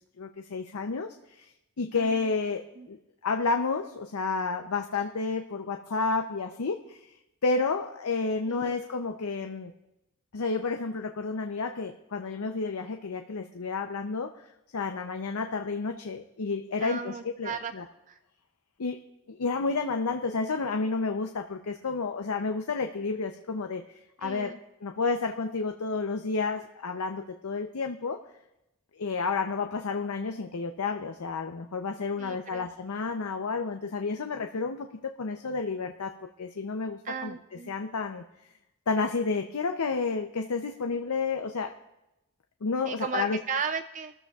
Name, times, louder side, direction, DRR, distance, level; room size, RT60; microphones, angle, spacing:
voice 1, 0.0-1.5 1.8-7.1 7.4-9.7 10.3-14.3 14.7-17.8 18.8-19.0 19.3-24.5 24.8-28.2 28.9-37.4 37.7-38.2 38.9-41.8 42.6-43.4, left 4 dB, 80° left, 5 dB, 0.6 m, -31 dB
voice 2, 16.8-17.7 18.1-18.2 24.2-24.6 32.2-32.7 37.0-37.7 42.9-44.1, right 6 dB, 35° right, 10 dB, 0.3 m, -35 dB
25.0 x 13.5 x 2.4 m, 0.92 s
head